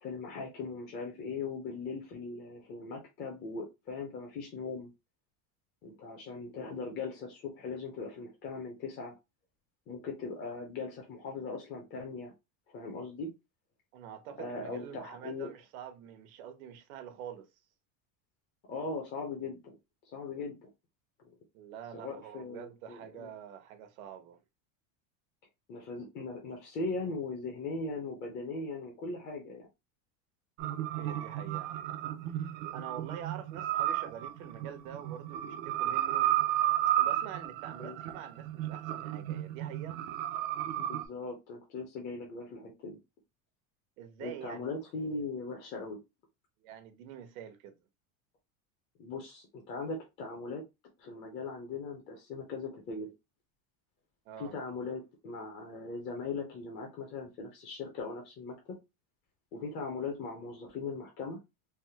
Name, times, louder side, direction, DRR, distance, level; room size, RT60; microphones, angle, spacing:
voice 1, 0.0-4.9 5.8-9.1 9.9-12.3 12.7-13.3 14.4-15.5 18.7-19.8 20.1-20.7 21.9-23.3 25.7-29.6 37.8-38.0 40.8-43.0 44.2-46.0 49.0-50.6 51.0-53.1 54.4-58.5 59.5-61.4, left 4 dB, 25° left, 0.5 m, -39 dB
voice 2, 13.9-17.5 21.5-24.4 31.0-32.2 32.7-36.3 37.0-40.0 44.0-44.7 46.6-47.7 54.3-54.5, right 9 dB, 85° right, 0.9 m, -46 dB
sound 1, 30.6-41.1, right 12 dB, 50° right, 0.5 m, -33 dB
3.3 x 2.0 x 2.7 m
cardioid pair, 165°, 41 cm